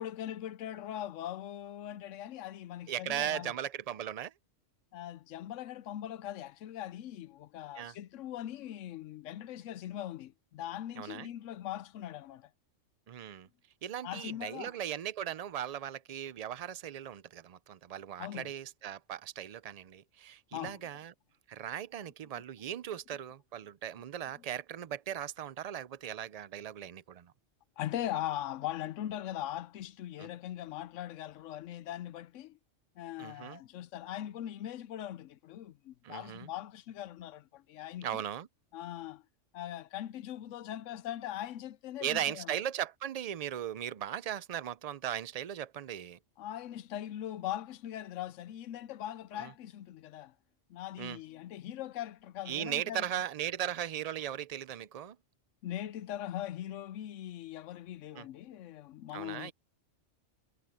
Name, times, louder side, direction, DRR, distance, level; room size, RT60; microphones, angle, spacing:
voice 1, 0.0-3.5 4.9-12.5 14.0-14.7 18.2-18.5 20.5-20.8 27.8-32.6 33.0-38.2 38.7-39.2 39.5-42.6 46.4-50.3 50.7-53.1 55.6-59.5, left 12 dB, 80° left, 0.9 m, -41 dB
voice 2, 2.9-4.3 7.8-7.9 11.0-11.3 13.1-13.5 13.8-21.1 21.5-27.3 30.2-30.3 33.2-33.6 36.0-36.5 38.0-38.5 42.0-46.2 49.3-49.5 51.0-51.2 52.5-55.2 58.1-58.3 59.1-59.5, right 10 dB, 70° right, 0.3 m, -38 dB
omnidirectional pair, 1.3 m